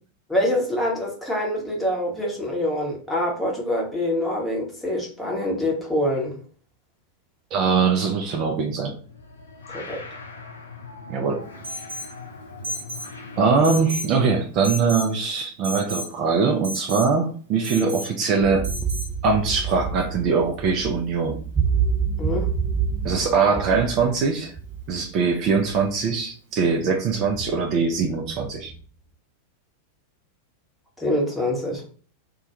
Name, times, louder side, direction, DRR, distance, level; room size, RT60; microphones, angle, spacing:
voice 1, 0.3-6.3 9.7-10.0 22.2-22.5 31.0-31.8, left 1 dB, 5° left, -2 dB, 0.8 m, -25 dB
voice 2, 7.5-9.0 11.1-11.4 13.4-18.7 19.2-21.4 23.0-24.5 24.9-28.7, right 5 dB, 40° right, 3 dB, 0.3 m, -22 dB
sound 1, 8.9-14.5, left 4 dB, 75° left, 0.4 m, -40 dB
Alarm, 11.6-12.1 12.6-13.1 13.6-14.1 14.6-15.1 15.6-16.1 16.6-17.1 17.6-18.1 18.6-19.1, right 1 dB, 60° right, 0.9 m, -32 dB
sound 2, 18.4-26.0 26.7-26.8 27.1-28.8, right 6 dB, 15° right, 1.2 m, -28 dB
2.2 x 2.1 x 2.7 m, 0.42 s
figure-of-eight pair, 90°, 0 cm